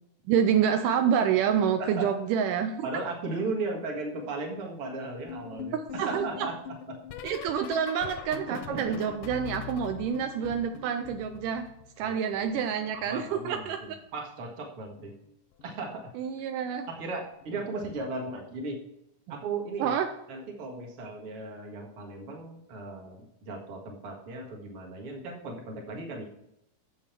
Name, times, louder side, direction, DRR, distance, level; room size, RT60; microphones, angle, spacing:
voice 1, 0.3-2.9 5.7-6.3 7.2-11.7 12.0-13.8 16.2-16.9 19.8-20.1, right 8 dB, 80° right, 6 dB, 2.1 m, -27 dB
voice 2, 1.8-2.1 2.8-6.6 6.9-7.0 8.5-9.0 12.0-12.5 12.9-15.1 15.6-16.1 16.9-18.8 19.3-20.0 20.3-26.2, right 3 dB, 45° right, 0 dB, 2.3 m, -36 dB
sound 1, 5.3-12.1 12.3-13.9 14.9-15.3 15.5-15.9 17.4-17.7 18.0-18.3 19.8-19.9, left 7 dB, 85° left, 2.3 m, -43 dB
7.4 x 7.2 x 5.9 m, 0.82 s
omnidirectional pair, 3.8 m